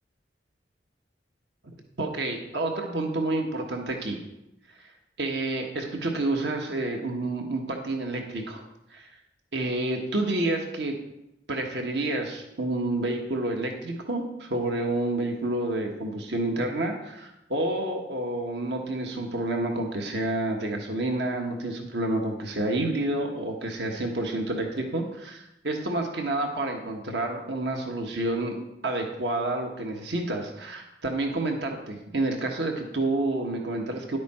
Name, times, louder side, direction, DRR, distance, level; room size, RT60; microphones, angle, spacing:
voice 1, 2.0-4.2 5.2-8.6 8.9-9.1 9.5-10.9 11.5-28.6 28.8-34.2, right 2 dB, 75° right, 2 dB, 1.4 m, -29 dB
11.0 x 8.3 x 4.3 m, 0.89 s
head